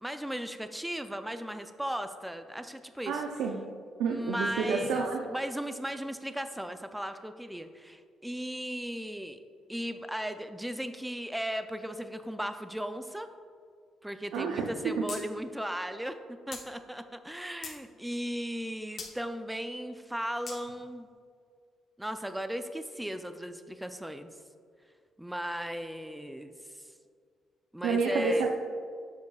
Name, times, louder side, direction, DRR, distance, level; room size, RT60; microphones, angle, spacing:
voice 1, 0.0-3.2 4.1-9.4 9.7-13.3 14.0-21.1 22.0-24.3 25.2-26.9 27.7-28.5, equal, 5° right, 9 dB, 0.3 m, -36 dB
voice 2, 3.1-3.6 4.0-5.2 14.3-15.0 27.8-28.5, right 4 dB, 90° right, 1 dB, 0.5 m, -29 dB
sound 1, 15.1-15.2 15.5-15.6 16.5-16.6 17.3-17.8 19.0-19.1 20.5-20.6, left 4 dB, 50° left, 0.9 m, -40 dB
7.1 x 6.4 x 2.3 m, 2.2 s
cardioid pair, 90°, 0 cm